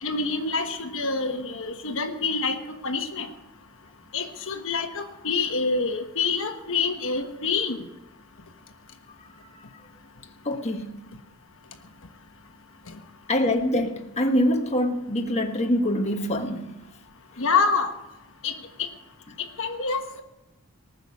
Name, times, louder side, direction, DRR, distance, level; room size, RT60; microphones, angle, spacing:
voice 1, 0.0-2.6 2.8-3.3 4.1-7.8 17.4-17.9 18.4-18.5 19.6-20.2, left 4 dB, 65° left, 1.3 m, -26 dB
voice 2, 10.4-11.0 13.3-16.8 17.3-17.4, left 1 dB, 30° left, 1.4 m, -25 dB
19.5 x 7.0 x 9.6 m
head